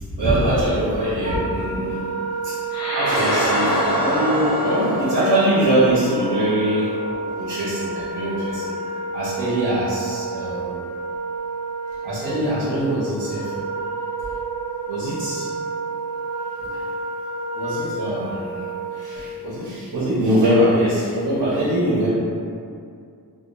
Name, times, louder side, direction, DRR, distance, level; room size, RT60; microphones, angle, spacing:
voice 1, 0.2-2.1 2.4-2.5 2.9-6.9 7.4-8.7 9.1-10.8 12.0-13.5 14.9-15.4 16.6-16.8 17.5-18.6 18.9-22.1, right 1 dB, 65° right, -10 dB, 0.7 m, -22 dB
Wind instrument woodwind instrument, 1.2-19.3, right 3 dB, 10° left, 0.8 m, -30 dB
sound 1, 2.7-7.4, equal, 60° left, 0.9 m, -26 dB
sound 2, 3.1-5.5, equal, 40° left, 0.5 m, -32 dB
2.8 x 2.1 x 2.3 m, 2.4 s
wide cardioid pair, 175°, 40 cm